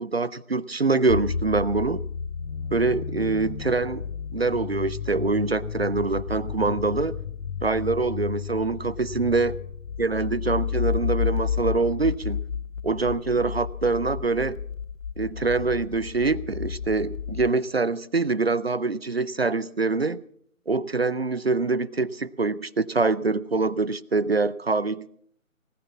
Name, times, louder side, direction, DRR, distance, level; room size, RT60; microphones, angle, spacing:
voice 1, 0.0-2.0 2.7-4.0 4.3-7.2 7.6-9.5 10.0-12.4 12.8-14.6 15.2-20.2 20.7-25.1, right 3 dB, 45° right, 20 dB, 0.5 m, -25 dB
sound 1, 1.1-17.5, left 7 dB, 65° left, 0.7 m, -31 dB
18.5 x 10.0 x 7.2 m, 0.65 s
figure-of-eight pair, 155°, 42 cm